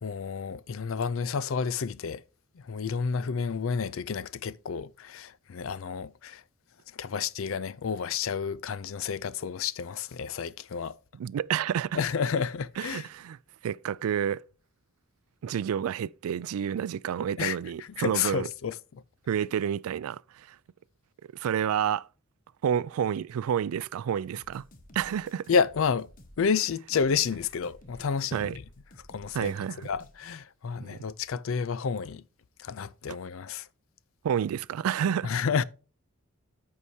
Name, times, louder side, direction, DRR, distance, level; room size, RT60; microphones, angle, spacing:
voice 1, 0.0-2.2 2.6-6.4 6.9-10.9 11.9-13.1 17.4-18.8 25.5-26.1 26.4-28.6 29.1-29.5 29.8-32.2 32.6-33.7 35.2-35.6, left 6 dB, 70° left, 0.4 m, -30 dB
voice 2, 11.1-12.0 12.8-13.4 13.6-14.4 15.4-18.5 19.3-20.6 21.3-22.1 22.6-24.6 24.9-25.5 28.3-28.6 29.3-29.9 30.8-31.0 33.1-33.2 34.2-35.3, right 8 dB, 85° right, 0.3 m, -29 dB
sound 1, 24.3-30.2, left 1 dB, 40° left, 1.0 m, -54 dB
14.0 x 4.7 x 2.7 m
head